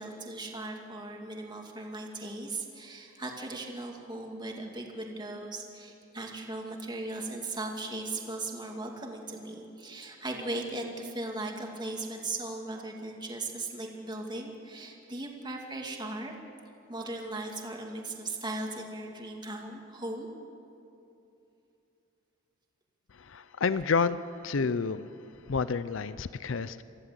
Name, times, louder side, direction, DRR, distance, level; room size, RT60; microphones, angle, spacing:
voice 1, 0.0-16.3 16.9-20.3, right 2 dB, 20° right, 1 dB, 2.4 m, -38 dB
voice 2, 23.1-24.2 24.4-25.1 25.5-26.8, left 5 dB, 70° left, 15 dB, 0.6 m, -29 dB
25.0 x 15.0 x 8.1 m, 2.8 s
head